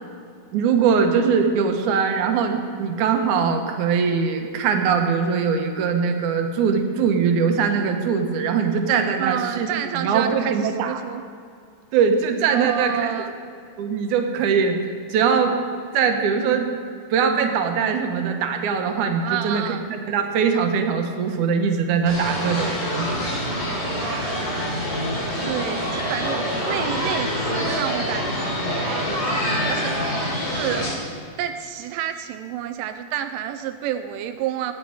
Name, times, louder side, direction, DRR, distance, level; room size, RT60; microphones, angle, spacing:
voice 1, 0.5-9.7 9.9-11.0 11.9-13.0 13.8-14.8 15.1-15.6 15.9-16.7 17.1-23.3, right 6 dB, 70° right, 4 dB, 2.4 m, -21 dB
voice 2, 9.2-11.2 12.5-13.4 19.2-19.8 24.0-30.9 31.4-34.7, right 10 dB, 90° right, 8 dB, 2.2 m, -30 dB
sound 1, 22.1-30.9, equal, 60° left, 4.8 m, -26 dB
15.5 x 9.3 x 4.8 m, 2.3 s
omnidirectional pair, 3.7 m